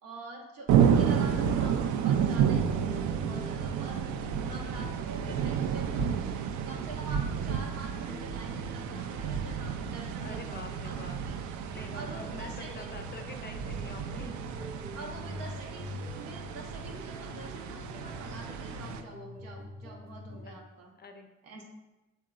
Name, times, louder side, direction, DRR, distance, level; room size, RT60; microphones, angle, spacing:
voice 1, 0.0-6.1 6.4-11.4 11.9-12.9 14.9-20.9 21.4-21.6, right 2 dB, 75° right, 0 dB, 1.0 m, -45 dB
sound 1, 0.7-19.0, right 8 dB, 50° right, 0.4 m, -31 dB
voice 2, 0.8-1.3 5.3-5.5 10.2-11.2 11.7-14.6 20.4-20.6 21.0-21.6, left 3 dB, 25° left, 5 dB, 0.4 m, -46 dB
sound 2, 1.1-20.6, left 1 dB, 25° right, 0.8 m, -46 dB
5.5 x 3.7 x 2.4 m, 1.1 s
hypercardioid pair, 45°, 38 cm